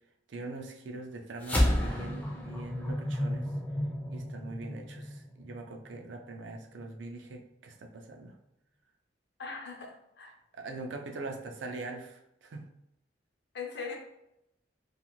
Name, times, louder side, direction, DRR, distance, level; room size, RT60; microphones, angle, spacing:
voice 1, 0.3-3.5 4.1-8.4 10.5-12.6, right 2 dB, 80° right, 3 dB, 0.4 m, -42 dB
sound 1, 1.4-6.0, left 1 dB, 10° left, 0.4 m, -31 dB
voice 2, 9.4-10.4 13.5-14.0, left 5 dB, 65° left, 1 dB, 0.5 m, -40 dB
2.4 x 2.4 x 2.9 m, 0.83 s
head